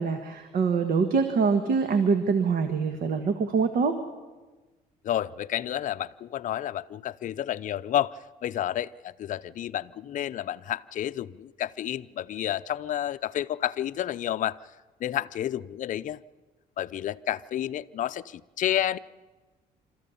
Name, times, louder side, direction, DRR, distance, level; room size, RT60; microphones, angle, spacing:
voice 1, 0.0-4.0, right 5 dB, 55° right, 8 dB, 1.4 m, -24 dB
voice 2, 5.0-8.1 8.4-14.6 15.0-16.2 16.8-19.0, left 11 dB, 50° left, 12 dB, 0.5 m, -30 dB
27.0 x 14.0 x 7.0 m, 1.2 s
cardioid pair, 110°, 17 cm